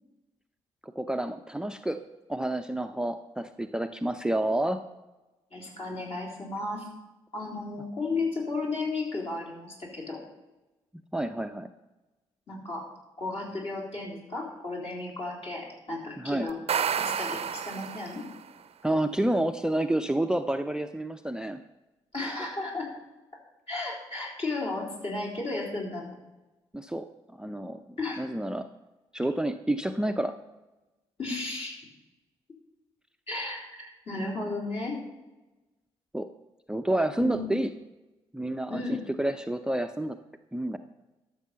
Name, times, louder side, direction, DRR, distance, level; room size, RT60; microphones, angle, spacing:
voice 1, 0.8-2.0 2.3-4.8 11.1-11.7 16.2-16.5 18.8-21.6 26.7-28.7 29.1-30.4 36.1-36.3 36.7-37.7 38.3-40.2 40.5-40.8, right 1 dB, 5° right, 10 dB, 0.6 m, -29 dB
voice 2, 5.5-6.9 7.3-10.2 12.5-12.9 13.2-16.6 16.9-18.2 22.1-22.9 23.7-26.2 28.0-28.2 31.2-31.7 33.3-35.0 37.2-37.5 38.7-39.0, left 3 dB, 45° left, -2 dB, 3.8 m, -34 dB
sound 1, 16.5-18.5, right 7 dB, 45° right, 0.6 m, -30 dB
12.5 x 6.8 x 5.6 m, 1.1 s
hypercardioid pair, 40°, 14 cm